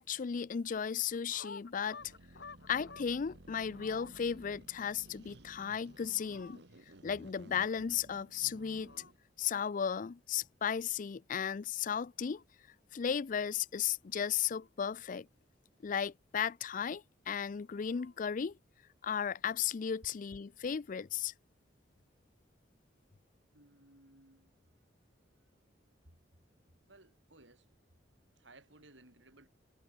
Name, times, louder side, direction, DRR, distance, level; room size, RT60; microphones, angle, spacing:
voice 1, 0.0-2.0 2.7-6.6 7.0-8.9 9.4-12.4 12.9-15.3 15.8-18.5 19.0-21.3, left 7 dB, 45° left, 0.4 m, -35 dB
sound 1, 1.1-3.2 3.5-4.2 5.8-6.6 8.2-9.1 9.4-9.7 11.8-12.4 14.0-15.0 17.4-18.2, left 4 dB, 65° left, 1.3 m, -54 dB
sound 2, 2.0-9.2, right 1 dB, 65° right, 1.6 m, -56 dB
voice 2, 23.5-24.5 26.9-27.7 28.4-29.5, right 2 dB, 85° right, 7.9 m, -60 dB
head